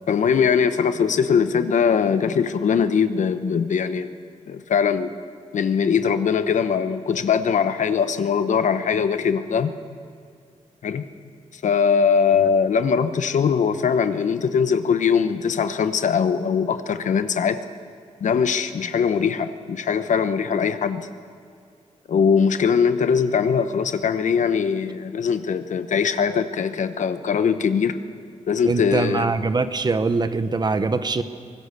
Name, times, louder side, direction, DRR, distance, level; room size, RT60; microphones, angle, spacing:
voice 1, 0.1-4.1 4.5-5.1 5.5-9.7 10.8-11.1 11.5-17.6 18.2-21.1 22.1-28.0 28.5-29.3, left 6 dB, 75° left, 10 dB, 1.0 m, -21 dB
voice 2, 28.6-31.2, right 3 dB, 35° right, 11 dB, 1.0 m, -23 dB
24.0 x 18.5 x 6.8 m, 2.4 s
wide cardioid pair, 115°, 13 cm